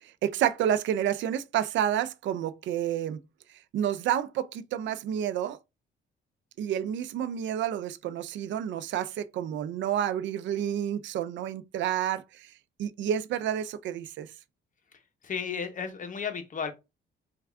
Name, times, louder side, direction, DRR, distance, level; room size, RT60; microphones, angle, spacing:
voice 1, 0.0-3.2 3.7-5.6 6.6-12.5 12.8-14.3, right 10 dB, 70° right, 0.4 m, -29 dB
voice 2, 15.2-16.7, left 6 dB, 40° left, 0.8 m, -33 dB
3.4 x 2.3 x 3.3 m
cardioid pair, 90°, 20 cm